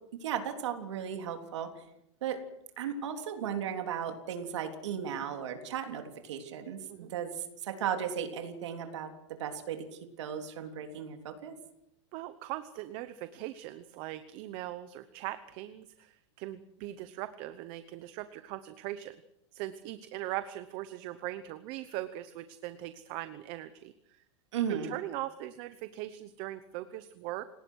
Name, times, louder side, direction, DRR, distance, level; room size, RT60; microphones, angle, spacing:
voice 1, 0.2-1.8 2.2-2.4 2.8-9.8 10.2-11.6 24.5-24.9, right 8 dB, 80° right, 5 dB, 3.4 m, -36 dB
voice 2, 12.1-19.2 19.5-24.2 24.7-27.4, right 14 dB, 35° right, 12 dB, 0.9 m, -40 dB
29.0 x 18.5 x 6.4 m, 0.82 s
supercardioid pair, 170°, 15 cm